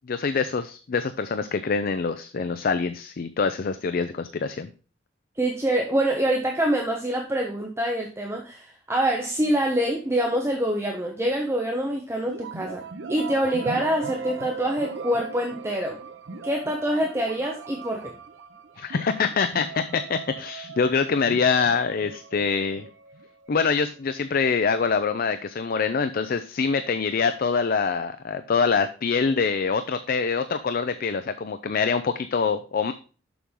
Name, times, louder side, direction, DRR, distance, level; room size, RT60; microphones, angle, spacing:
voice 1, 0.1-4.7 18.8-22.9 23.5-32.9, left 5 dB, 55° left, 11 dB, 0.5 m, -25 dB
voice 2, 5.4-12.8 13.1-16.0 16.4-18.1, right 1 dB, 15° right, 1 dB, 0.9 m, -25 dB
sound 1, 12.3-24.0, right 5 dB, 90° right, 0.8 m, -39 dB
7.0 x 6.2 x 3.7 m, 0.37 s
head